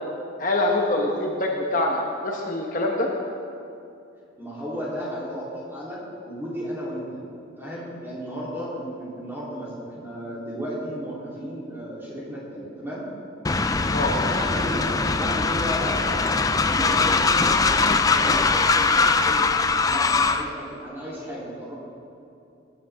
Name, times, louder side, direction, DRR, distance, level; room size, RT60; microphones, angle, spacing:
voice 1, 0.4-3.1 13.9-14.1, left 2 dB, 45° left, 0 dB, 1.1 m, -24 dB
voice 2, 4.4-6.0 6.2-7.2 7.6-13.1 13.9-17.8 18.1-19.5 19.9-21.7, equal, 10° right, -7 dB, 3.4 m, -34 dB
Train, 13.4-20.5, left 4 dB, 20° left, 0.4 m, -21 dB
19.5 x 11.0 x 3.6 m, 2.6 s
head